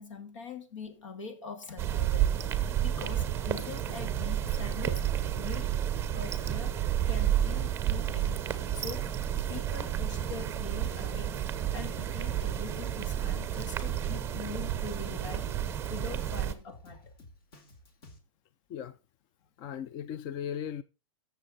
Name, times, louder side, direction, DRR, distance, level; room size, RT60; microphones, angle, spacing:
voice 1, 0.0-2.3 2.8-5.0 5.3-5.7 6.1-9.2 9.5-11.4 11.7-15.5 15.9-17.0, left 5 dB, 70° left, 2.7 m, -43 dB
sound 1, 1.8-16.5, right 11 dB, 15° right, 0.8 m, -31 dB
Drum kit, 7.5-18.2, left 1 dB, 45° left, 2.7 m, -54 dB
voice 2, 19.6-20.8, left 9 dB, 25° left, 0.4 m, -37 dB
14.0 x 6.8 x 4.1 m
supercardioid pair, 155°, 16 cm